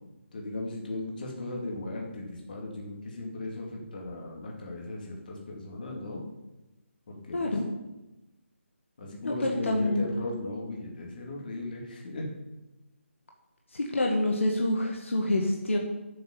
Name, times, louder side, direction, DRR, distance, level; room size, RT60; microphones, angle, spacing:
voice 1, 0.3-6.2 7.1-7.5 9.0-12.3, left 2 dB, 40° left, -1 dB, 2.6 m, -37 dB
voice 2, 7.3-7.6 9.2-10.1 13.7-15.8, left 1 dB, 65° left, 0 dB, 1.7 m, -27 dB
7.8 x 7.2 x 7.9 m, 1.0 s
figure-of-eight pair, 150°, 7 cm